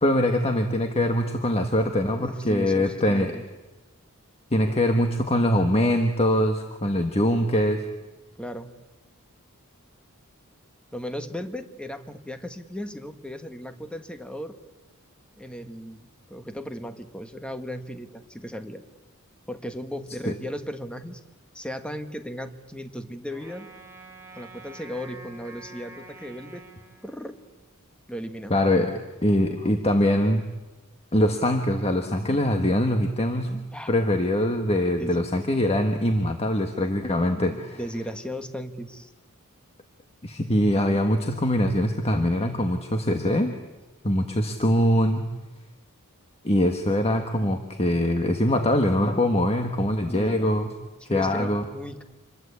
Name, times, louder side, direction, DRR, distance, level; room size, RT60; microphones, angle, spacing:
voice 1, 0.0-3.3 4.5-7.8 20.3-20.4 28.5-28.9 29.2-30.5 31.1-37.8 40.2-43.5 44.0-45.3 46.4-50.7 51.1-51.6, left 1 dB, 30° left, 5 dB, 1.5 m, -23 dB
voice 2, 2.2-3.4 8.4-8.7 10.9-14.6 15.4-18.8 19.5-21.2 21.5-23.7 24.3-26.6 27.0-27.4 28.1-28.5 33.7-34.0 35.0-35.2 37.7-39.1 50.1-50.3 51.0-52.0, equal, 5° left, 8 dB, 1.5 m, -36 dB
Wind instrument woodwind instrument, 23.3-27.7, right 2 dB, 10° right, 3.0 m, -47 dB
27.0 x 22.0 x 8.3 m, 1.1 s
head